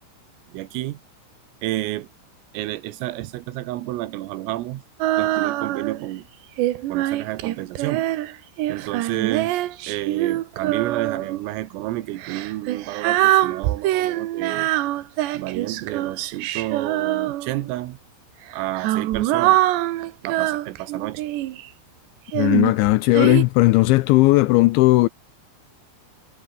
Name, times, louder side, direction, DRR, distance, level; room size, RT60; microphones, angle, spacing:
voice 1, 0.5-1.0 1.6-2.1 2.5-4.8 5.2-6.3 6.9-8.1 8.7-14.7 15.3-18.0 18.5-19.6 20.2-21.2, right 16 dB, 90° right, 3.9 m, -30 dB
Female singing, 5.0-6.1 6.6-11.4 12.2-17.7 18.5-21.6 22.3-23.4, right 15 dB, 70° right, 3.1 m, -24 dB
voice 2, 22.3-25.1, left 20 dB, 85° left, 2.7 m, -16 dB
omnidirectional pair, 5.9 m